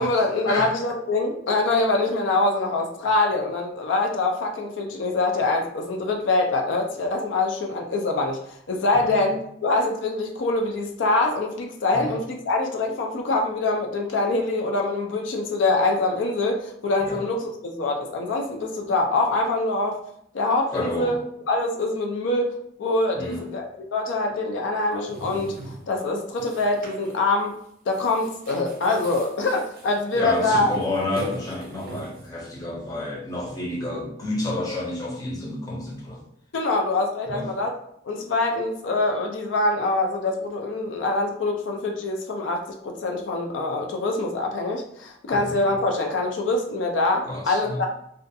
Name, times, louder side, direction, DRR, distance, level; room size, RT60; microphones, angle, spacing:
voice 1, 0.0-20.0 20.3-21.2 21.5-27.5 27.9-30.7 36.5-37.7 38.0-47.9, left 2 dB, 85° left, 2 dB, 0.4 m, -24 dB
voice 2, 8.9-9.3 11.9-12.2 17.0-17.2 20.7-21.2 23.2-23.5 30.1-36.2 37.3-37.5 45.3-45.5 47.2-47.8, left 2 dB, 20° left, -4 dB, 0.6 m, -30 dB
sound 1, 23.3-23.5 24.9-25.9 26.3-27.2 27.5-27.6 27.9-32.3, right 1 dB, 50° right, 0.6 m, -41 dB
2.4 x 2.2 x 2.6 m, 0.72 s
head